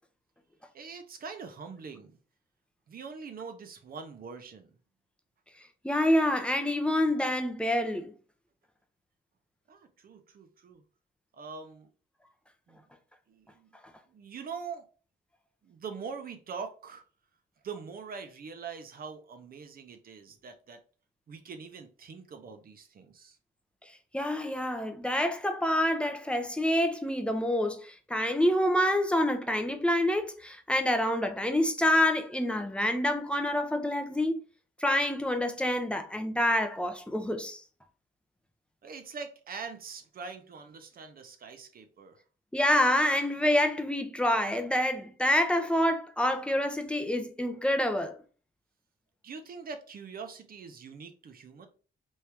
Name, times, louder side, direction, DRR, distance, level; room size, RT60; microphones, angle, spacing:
voice 1, 0.7-2.2 2.9-4.8 9.7-10.8 11.3-11.9 12.7-12.9 13.3-13.8 14.1-14.9 15.6-17.0 17.6-20.8 21.3-23.4 38.8-42.2 49.2-51.7, right 5 dB, 45° right, 0.7 m, -43 dB
voice 2, 5.8-8.1 24.1-34.4 34.8-37.6 42.5-48.1, left 1 dB, 5° left, 0.6 m, -27 dB
3.1 x 2.7 x 3.4 m
cardioid pair, 90°, 20 cm